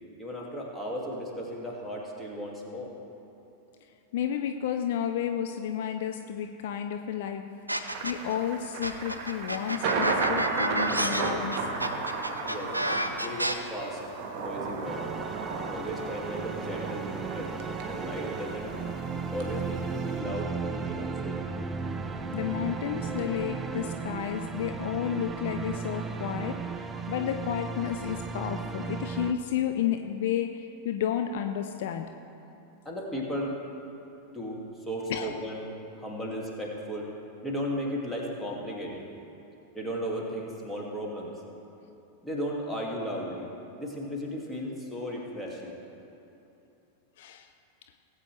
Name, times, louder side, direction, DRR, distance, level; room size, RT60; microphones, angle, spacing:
voice 1, 0.2-2.9 12.4-12.7 13.2-14.0 14.4-15.0 15.5-17.5 17.9-18.8 19.3-21.4 32.9-33.6 34.3-34.6 34.9-35.6 36.0-37.1 37.4-39.0 39.7-41.3 42.2-43.5 43.8-45.8, equal, 5° left, -3 dB, 2.1 m, -35 dB
voice 2, 4.1-7.5 8.0-11.7 22.3-32.1 35.1-35.3 47.2-47.5, left 9 dB, 55° left, 6 dB, 0.5 m, -31 dB
sound 1, 7.7-8.3 8.8-13.5, right 1 dB, 85° right, 0.6 m, -29 dB
Thunder, 7.9-20.2, right 4 dB, 40° right, 1.6 m, -34 dB
sound 2, 14.8-29.3, right 5 dB, 15° right, 0.6 m, -35 dB
18.5 x 8.4 x 3.3 m, 2.9 s
figure-of-eight pair, 90°, 0 cm